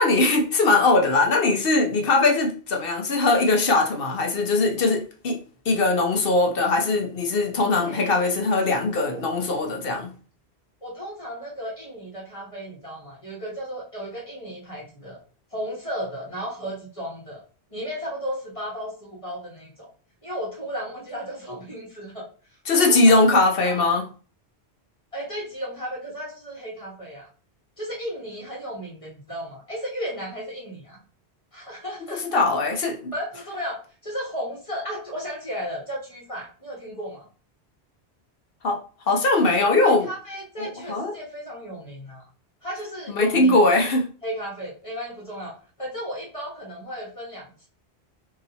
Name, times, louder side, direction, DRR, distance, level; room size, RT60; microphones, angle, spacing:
voice 1, 0.0-5.4 5.7-10.1 22.7-24.0 32.3-33.1 38.6-38.8 39.1-40.1 40.6-41.1 43.1-44.1, left 2 dB, 60° left, 1.0 m, -20 dB
voice 2, 7.9-8.3 9.1-9.2 10.8-15.2 15.5-17.4 17.7-19.9 20.2-23.9 25.1-27.3 27.8-31.0 31.5-32.4 33.1-37.3 39.8-42.2 42.6-43.6 44.2-47.7, equal, 30° left, 1.3 m, -34 dB
3.0 x 2.8 x 3.9 m
omnidirectional pair, 1.1 m